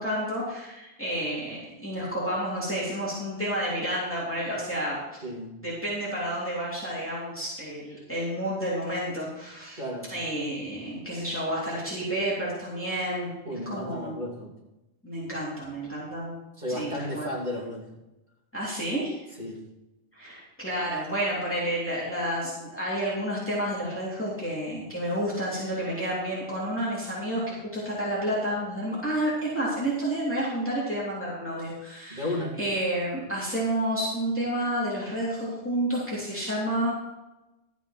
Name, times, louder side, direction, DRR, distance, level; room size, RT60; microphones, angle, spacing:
voice 1, 0.0-5.0 5.6-9.8 10.1-13.3 13.6-14.2 15.0-16.3 16.7-17.3 18.5-19.2 20.1-32.3 32.6-36.9, right 1 dB, 10° left, -7 dB, 3.1 m, -30 dB
voice 2, 5.2-5.5 9.8-10.1 13.4-14.5 16.6-17.9 19.4-19.6 32.1-32.5, left 1 dB, 40° right, -4 dB, 3.2 m, -33 dB
12.5 x 8.2 x 4.3 m, 0.99 s
omnidirectional pair, 1.2 m